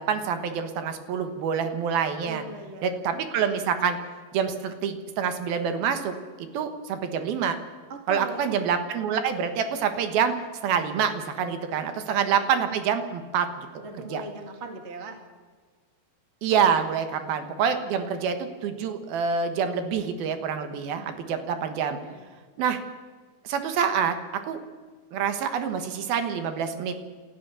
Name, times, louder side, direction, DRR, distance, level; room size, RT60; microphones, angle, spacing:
voice 1, 0.0-2.4 2.8-4.0 4.3-6.1 6.4-7.6 8.1-10.3 10.6-13.8 14.1-14.2 16.4-22.0 22.6-22.8 23.4-24.1 24.4-24.6 25.1-26.9, right 7 dB, 75° right, 8 dB, 3.2 m, -26 dB
voice 2, 2.2-3.0 6.4-6.6 7.9-8.7 11.7-12.1 13.8-15.2 16.8-17.3 20.7-21.1 22.0-22.3, right 3 dB, 25° right, 4 dB, 1.6 m, -41 dB
28.0 x 14.0 x 6.9 m, 1.5 s
omnidirectional pair, 4.4 m